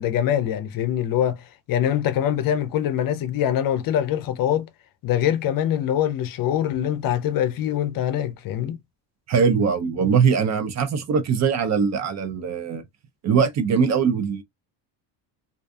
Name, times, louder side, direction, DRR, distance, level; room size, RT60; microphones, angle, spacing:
voice 1, 0.0-4.7 5.0-8.8, left 10 dB, 50° left, 0.5 m, -24 dB
voice 2, 9.3-12.8 13.2-14.4, right 6 dB, 40° right, 0.4 m, -21 dB
2.5 x 2.2 x 2.5 m
cardioid pair, 110°, 44 cm